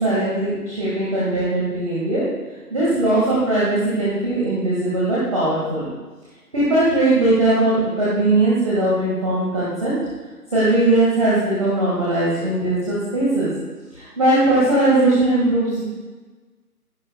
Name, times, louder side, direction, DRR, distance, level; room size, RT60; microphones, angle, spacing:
voice 1, 0.0-2.3 2.7-5.9 6.5-10.0 10.5-13.5 14.0-15.8, right 2 dB, 20° right, -8 dB, 2.0 m, -19 dB
21.0 x 11.5 x 2.4 m, 1.3 s
figure-of-eight pair, 160°, 48 cm